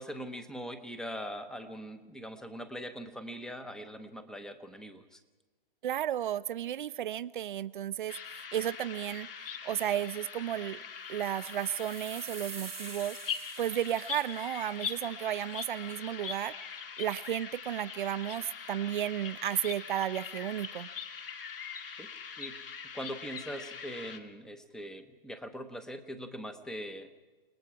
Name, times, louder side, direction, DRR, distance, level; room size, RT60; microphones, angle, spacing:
voice 1, 0.0-5.2 22.0-22.1 22.4-27.1, equal, ahead, 9 dB, 0.8 m, -42 dB
voice 2, 5.8-9.3 9.6-10.8 11.1-13.2 13.6-16.5 17.0-20.9, right 11 dB, 55° right, 16 dB, 0.7 m, -33 dB
sound 1, 8.1-24.2, left 6 dB, 70° left, 2.4 m, -42 dB
sound 2, 11.2-14.4, right 8 dB, 85° right, 0.9 m, -47 dB
29.0 x 20.0 x 4.8 m, 1.2 s
hypercardioid pair, 145°, 29 cm